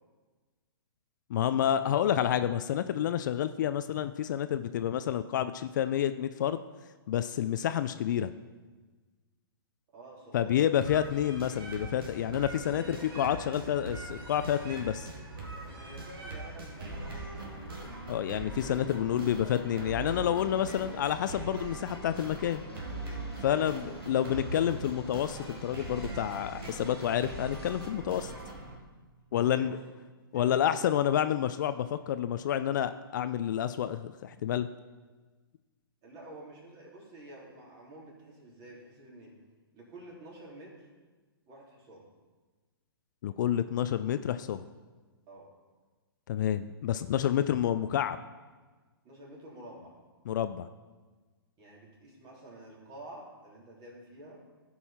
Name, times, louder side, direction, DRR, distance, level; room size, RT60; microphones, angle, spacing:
voice 1, 1.3-6.6 7.1-8.3 10.3-15.1 18.1-22.6 23.4-28.3 29.3-29.8 30.3-34.7 43.2-44.6 46.3-48.2 50.3-50.7, left 10 dB, 50° left, 11 dB, 0.4 m, -29 dB
voice 2, 9.9-10.7 12.8-13.1 15.7-17.6 23.4-23.8 29.4-29.8 30.3-31.0 36.0-39.3 39.7-40.9 41.5-42.0 45.3-45.5 49.0-49.9 51.6-54.4, right 1 dB, 30° right, -3 dB, 3.4 m, -49 dB
sound 1, 10.8-28.8, right 2 dB, 65° right, 2.4 m, -41 dB
sound 2, 11.8-27.9, left 2 dB, 90° left, 1.8 m, -54 dB
16.0 x 5.5 x 4.3 m, 1.3 s
figure-of-eight pair, 120°, 13 cm